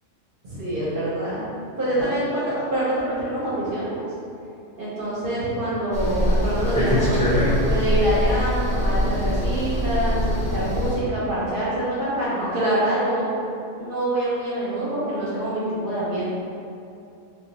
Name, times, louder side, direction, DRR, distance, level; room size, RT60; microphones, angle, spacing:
voice 1, 0.4-1.4 1.8-4.0 4.7-13.3 13.8-16.2, right 1 dB, 50° right, -9 dB, 0.8 m, -25 dB
sound 1, 5.9-11.0, equal, 10° left, 0.3 m, -23 dB
2.4 x 2.3 x 3.9 m, 2.6 s
omnidirectional pair, 1.4 m